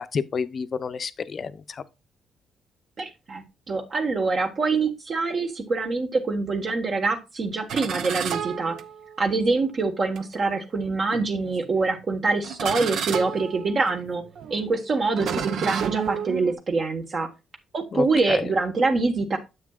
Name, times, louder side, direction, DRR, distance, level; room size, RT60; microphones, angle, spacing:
voice 1, 0.0-1.8 17.9-18.5, left 5 dB, 45° left, 0.6 m, -30 dB
voice 2, 3.0-8.8 9.2-14.2 14.5-17.3 17.7-19.4, right 3 dB, 45° right, 1.4 m, -25 dB
sound 1, 7.7-9.3 10.2-10.3 11.1-11.7 12.4-16.5, right 8 dB, 75° right, 0.8 m, -31 dB
9.5 x 7.3 x 2.4 m
cardioid pair, 90°, 0 cm